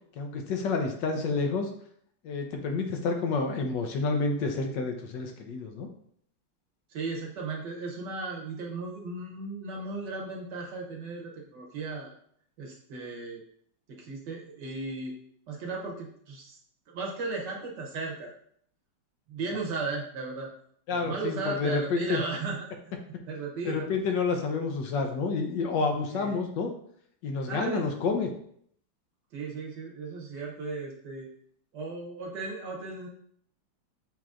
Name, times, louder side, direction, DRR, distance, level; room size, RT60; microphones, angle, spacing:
voice 1, 0.2-1.7 2.2-5.9 20.9-22.2 23.6-26.7 27.2-28.3, left 4 dB, 75° left, 4 dB, 1.3 m, -29 dB
voice 2, 6.9-12.1 12.6-13.4 13.9-15.2 15.5-16.6 16.9-18.3 19.3-20.5 20.9-22.7 23.3-23.9 26.1-26.4 27.5-27.9 29.3-31.3 31.7-33.1, right 3 dB, 65° right, -1 dB, 1.4 m, -35 dB
7.3 x 2.9 x 2.4 m, 0.64 s
omnidirectional pair, 2.1 m